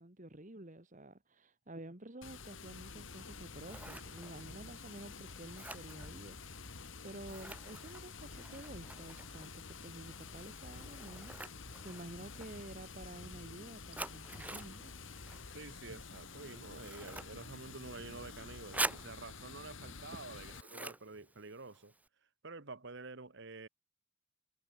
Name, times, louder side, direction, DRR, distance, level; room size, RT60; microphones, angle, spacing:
voice 1, 0.0-6.7 7.0-15.0, right 1 dB, 35° right, 2.0 m, -51 dB
Water, 2.2-20.6, left 4 dB, 60° left, 1.9 m, -49 dB
Scissors, 3.3-22.1, right 2 dB, 5° right, 1.4 m, -48 dB
voice 2, 15.5-21.9 22.4-23.7, right 3 dB, 55° right, 1.3 m, -49 dB
head